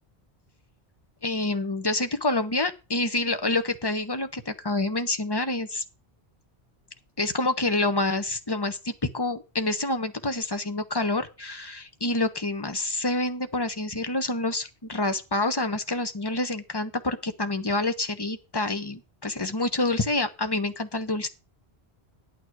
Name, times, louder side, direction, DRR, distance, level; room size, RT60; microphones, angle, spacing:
voice 1, 1.2-5.8 7.2-21.3, left 2 dB, 25° left, 9 dB, 1.0 m, -27 dB
10.5 x 9.2 x 4.6 m, 0.29 s
omnidirectional pair, 1.1 m